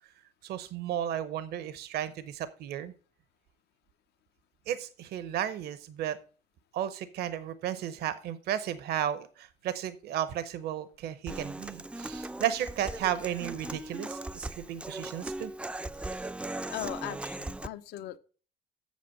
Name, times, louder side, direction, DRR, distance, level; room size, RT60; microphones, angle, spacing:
voice 1, 0.4-2.9 4.7-6.2 6.7-15.5, right 10 dB, 70° right, 0.8 m, -34 dB
Human voice / Acoustic guitar, 11.3-17.7, right 2 dB, 5° right, 0.4 m, -38 dB
voice 2, 16.7-18.2, left 13 dB, 75° left, 0.8 m, -38 dB
8.3 x 6.8 x 5.3 m
cardioid pair, 110°, 17 cm